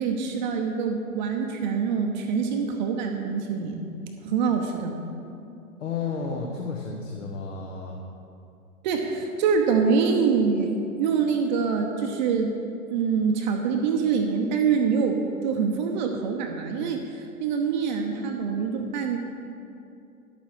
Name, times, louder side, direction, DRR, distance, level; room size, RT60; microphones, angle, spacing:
voice 1, 0.0-3.8 4.2-4.9 8.8-12.6 12.9-19.2, right 5 dB, 30° right, 3 dB, 0.8 m, -25 dB
voice 2, 5.8-8.0, left 4 dB, 60° left, 1 dB, 1.2 m, -32 dB
11.0 x 8.4 x 4.7 m, 2.6 s
figure-of-eight pair, 115°, 43 cm